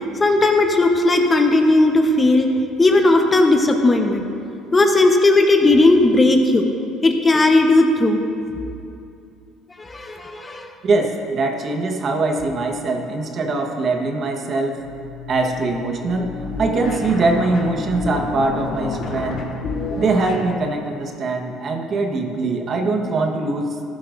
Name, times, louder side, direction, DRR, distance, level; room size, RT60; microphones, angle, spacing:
voice 1, 0.2-2.5 2.8-4.3 4.7-6.7 7.0-8.2 9.8-10.7, left 2 dB, 25° left, 4 dB, 1.0 m, -16 dB
voice 2, 10.8-14.8 15.3-16.3 16.6-19.5 20.0-23.7, right 3 dB, 45° right, 3 dB, 1.2 m, -22 dB
sound 1, 14.8-20.5, left 3 dB, 55° left, 2.0 m, -29 dB
14.5 x 11.0 x 2.6 m, 2.6 s
supercardioid pair, 85°, 0 cm